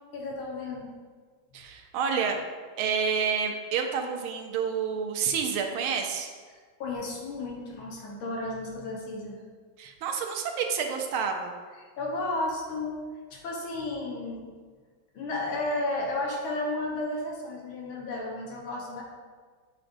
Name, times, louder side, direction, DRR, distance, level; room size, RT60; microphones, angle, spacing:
voice 1, 0.1-0.9 6.8-9.4 11.8-13.0 13.3-14.5 15.1-19.0, left 2 dB, 75° left, -2 dB, 1.7 m, -33 dB
voice 2, 1.5-2.4 2.8-6.3 9.8-11.5, right 6 dB, 85° right, 4 dB, 1.5 m, -29 dB
7.5 x 5.0 x 2.6 m, 1.5 s
omnidirectional pair, 2.3 m